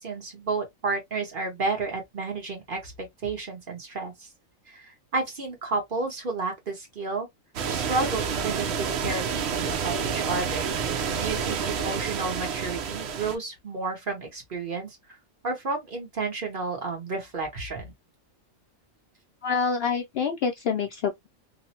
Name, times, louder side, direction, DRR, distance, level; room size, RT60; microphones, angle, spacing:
voice 1, 0.0-4.3 4.7-7.3 7.6-10.7 11.2-15.0 15.4-17.9, right 3 dB, 45° right, 1.1 m, -31 dB
sound 1, 7.6-13.4, right 6 dB, 60° right, 0.8 m, -29 dB
voice 2, 19.4-21.3, left 6 dB, 65° left, 0.6 m, -27 dB
3.1 x 2.0 x 2.7 m
omnidirectional pair, 1.4 m